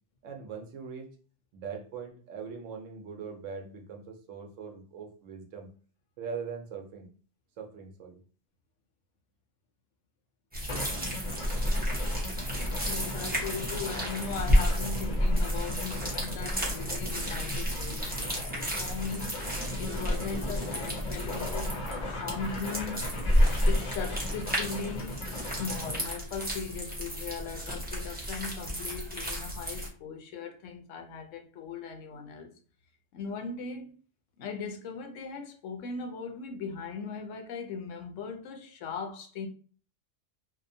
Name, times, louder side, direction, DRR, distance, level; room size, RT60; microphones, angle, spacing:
voice 1, 0.2-1.1 1.5-5.7 6.2-7.1 7.6-8.2 13.2-13.6, right 6 dB, 80° right, 1.0 m, -41 dB
sound 1, 10.5-29.9, equal, 10° right, 0.5 m, -31 dB
sound 2, 10.7-26.1, left 2 dB, 50° left, 0.7 m, -39 dB
voice 2, 12.9-21.8 22.1-23.1 23.6-32.5 33.1-33.9 34.4-39.5, left 5 dB, 75° left, 0.9 m, -39 dB
2.7 x 2.1 x 2.6 m
omnidirectional pair, 1.3 m